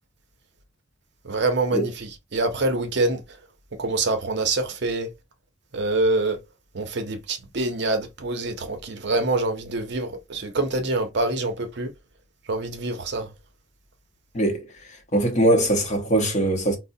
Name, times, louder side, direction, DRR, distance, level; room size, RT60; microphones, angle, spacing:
voice 1, 1.2-3.4 3.8-5.1 5.7-6.4 6.7-11.9 12.5-13.3, right 2 dB, 55° right, 0.6 m, -25 dB
voice 2, 14.3-16.8, right 1 dB, 35° left, 0.7 m, -22 dB
4.5 x 2.0 x 2.6 m
head